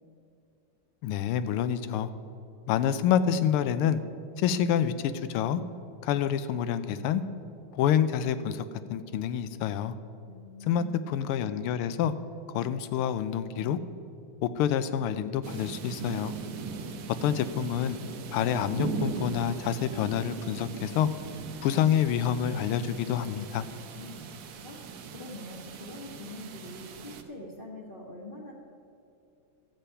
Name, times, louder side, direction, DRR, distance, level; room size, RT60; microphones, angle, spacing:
voice 1, 1.0-2.1 2.7-4.0 4.4-5.6 6.0-7.2 7.7-8.6 8.9-9.9 10.7-12.1 12.5-13.8 14.4-16.3 17.2-18.0 18.3-21.1 21.6-23.7, left 9 dB, 85° left, 12 dB, 1.5 m, -27 dB
voice 2, 10.3-11.1 16.6-17.1 23.9-24.3 24.6-28.5, left 2 dB, 30° left, -4 dB, 1.1 m, -44 dB
sound 1, 15.4-27.2, right 5 dB, 80° right, 0.7 m, -39 dB
12.5 x 8.3 x 5.6 m, 2.7 s
omnidirectional pair, 2.4 m